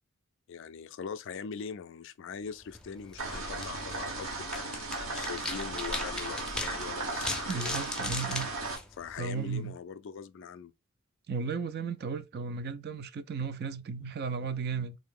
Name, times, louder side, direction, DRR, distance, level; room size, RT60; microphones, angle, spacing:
voice 1, 0.5-7.8 8.9-10.7, left 6 dB, 60° left, 0.3 m, -42 dB
sound 1, 2.6-9.6, left 2 dB, 5° left, 0.5 m, -40 dB
sound 2, 3.2-8.8, right 2 dB, 65° right, 1.2 m, -36 dB
voice 2, 7.5-8.5 9.2-9.7 11.3-15.0, right 5 dB, 45° right, 0.4 m, -35 dB
3.7 x 2.7 x 3.6 m
head